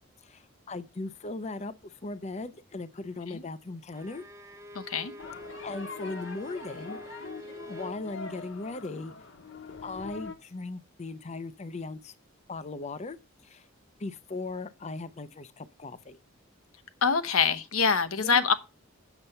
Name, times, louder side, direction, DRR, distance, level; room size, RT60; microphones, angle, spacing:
voice 1, 0.2-4.2 5.6-7.2 7.7-9.1 9.8-12.1 12.5-13.2 13.4-13.7 14.0-16.2 18.1-18.4, left 3 dB, 30° left, 0.5 m, -38 dB
Bowed string instrument, 3.9-8.0, left 1 dB, 15° right, 0.6 m, -46 dB
voice 2, 4.7-5.1 17.0-18.5, left 6 dB, 90° left, 1.0 m, -25 dB
sound 1, 5.2-10.3, left 4 dB, 60° left, 1.2 m, -43 dB
8.0 x 6.7 x 5.5 m
head